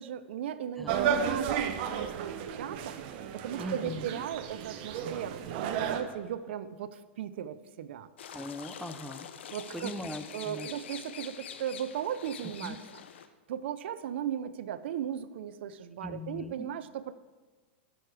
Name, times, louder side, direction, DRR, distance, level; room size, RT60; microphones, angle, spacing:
voice 1, 0.0-8.1 9.5-10.0 10.3-13.0 13.5-17.1, right 9 dB, 75° right, 14 dB, 0.5 m, -37 dB
sound 1, 0.9-6.0, right 8 dB, 55° right, 1.0 m, -33 dB
voice 2, 3.6-4.1 8.3-9.3 9.7-10.7 12.6-12.8 16.0-16.7, left 1 dB, ahead, 9 dB, 0.5 m, -40 dB
sound 2, 8.2-13.3, left 8 dB, 85° left, 0.7 m, -45 dB
12.5 x 6.4 x 4.8 m, 1.3 s
hypercardioid pair, 125°, 6 cm